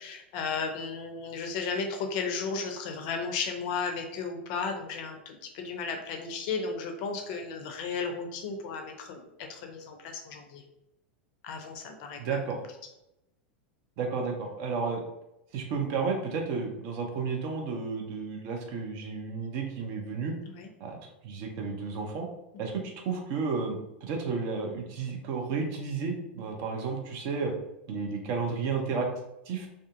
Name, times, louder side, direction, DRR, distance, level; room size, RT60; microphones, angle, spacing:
voice 1, 0.0-9.2 9.5-10.6 11.4-12.4 20.5-20.7, left 5 dB, 45° left, 4 dB, 0.4 m, -34 dB
voice 2, 12.2-12.6 14.0-15.0 15.5-20.3 20.8-21.0 21.2-22.3 22.6-27.5 27.9-29.1 29.5-29.7, right 5 dB, 45° right, 2 dB, 0.5 m, -32 dB
2.5 x 2.4 x 2.4 m, 0.86 s
figure-of-eight pair, 90°, 6 cm